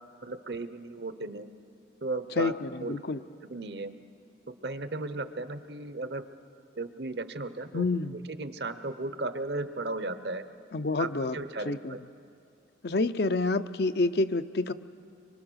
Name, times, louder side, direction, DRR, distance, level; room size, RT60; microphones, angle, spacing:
voice 1, 0.2-1.5 2.0-2.5 2.8-3.0 3.5-3.9 4.6-6.2 6.8-7.9 8.3-10.4 11.0-12.0, right 2 dB, 60° right, 11 dB, 0.9 m, -35 dB
voice 2, 2.4-3.2 7.7-8.2 10.7-11.4 11.6-12.0 12.8-14.7, left 3 dB, 55° left, 11 dB, 0.6 m, -28 dB
25.5 x 24.0 x 6.3 m, 2.4 s
head